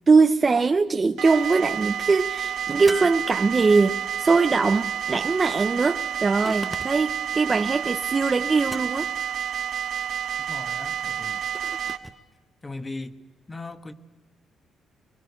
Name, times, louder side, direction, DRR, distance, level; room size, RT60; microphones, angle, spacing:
voice 1, 0.1-9.1 11.6-11.7, right 4 dB, 30° right, 0.9 m, -21 dB
sound 1, 1.2-12.0, right 9 dB, 75° right, 2.0 m, -30 dB
sound 2, 2.9-4.0 6.5-7.2 8.7-9.3 11.5-12.2, right 1 dB, 5° right, 0.9 m, -39 dB
voice 2, 10.5-11.4 12.6-13.2 13.5-13.9, left 2 dB, 20° left, 1.6 m, -38 dB
24.5 x 22.5 x 8.2 m
cardioid pair, 90°, 0 cm